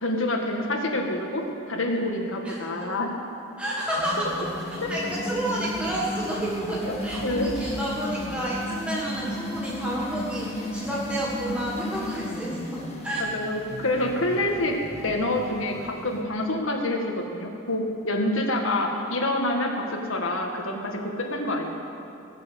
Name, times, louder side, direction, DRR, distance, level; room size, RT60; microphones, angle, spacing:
voice 1, 0.0-1.4 1.7-3.1 7.2-7.5 13.3-14.8 15.0-17.0 17.3-21.7, left 1 dB, 70° left, 1 dB, 1.9 m, -27 dB
voice 2, 2.4-2.9 3.6-4.3 4.6-13.2, right 1 dB, 5° right, -6 dB, 1.6 m, -30 dB
sound 1, 3.9-16.2, equal, 30° left, 1.6 m, -34 dB
19.5 x 7.0 x 8.3 m, 2.8 s
head